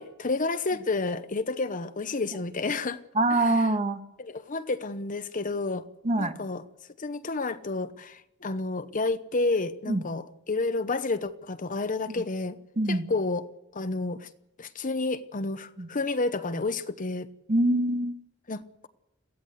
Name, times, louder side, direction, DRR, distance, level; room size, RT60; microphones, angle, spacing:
voice 1, 0.0-3.0 3.3-3.5 4.2-5.9 6.2-6.6 7.0-12.6 12.9-13.4 13.7-14.3 14.6-17.3 18.5-18.9, left 3 dB, 40° left, 0.9 m, -30 dB
voice 2, 3.1-4.0 6.0-6.3 9.9-10.0 12.8-13.1 15.8-15.9 17.5-18.2, right 1 dB, 35° right, 1.5 m, -24 dB
22.5 x 15.0 x 8.1 m
head